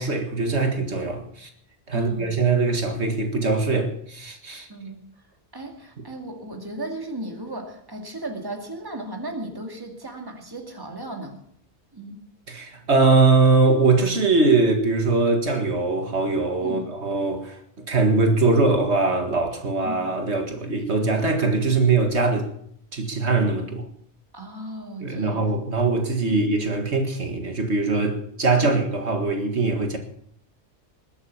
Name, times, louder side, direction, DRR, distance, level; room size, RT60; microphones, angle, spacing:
voice 1, 0.0-1.5 1.9-4.7 12.5-17.6 17.9-22.5 22.9-23.9 25.0-30.0, right 3 dB, 70° right, 2.1 m, -22 dB
voice 2, 1.9-2.3 4.7-5.0 5.5-11.4 11.9-12.2 16.6-16.9 19.8-20.0 24.3-25.4 26.3-26.5 28.6-28.7, right 1 dB, 20° right, 2.3 m, -35 dB
21.0 x 8.1 x 7.1 m
omnidirectional pair, 1.2 m